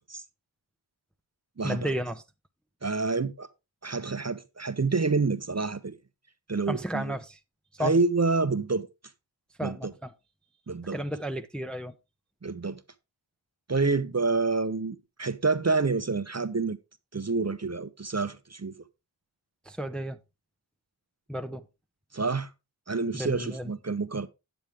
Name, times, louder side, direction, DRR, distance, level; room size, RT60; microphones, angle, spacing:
voice 1, 1.6-2.2 6.7-7.4 7.7-8.0 9.6-10.1 10.9-11.9 19.6-20.2 21.3-21.7 23.1-23.7, equal, ahead, 0.6 m, -33 dB
voice 2, 2.8-3.5 3.8-6.0 6.5-7.1 7.8-8.9 9.6-9.8 10.7-11.0 12.4-12.8 13.7-16.8 17.1-18.7 22.1-22.5 22.9-24.3, right 4 dB, 35° right, 0.7 m, -28 dB
9.0 x 8.1 x 3.4 m
wide cardioid pair, 45°, 48 cm